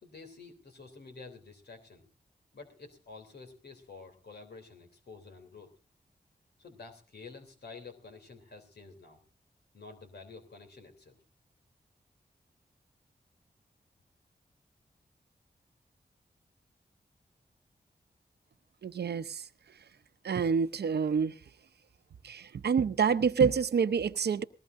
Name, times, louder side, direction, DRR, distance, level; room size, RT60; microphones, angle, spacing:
voice 1, 0.0-2.0 2.5-5.7 6.6-9.2 9.7-11.2, left 4 dB, 85° left, 3.3 m, -50 dB
voice 2, 18.8-19.4 20.2-21.3 22.2-24.4, right 6 dB, 85° right, 0.8 m, -27 dB
20.0 x 18.0 x 2.6 m
cardioid pair, 55°, 17 cm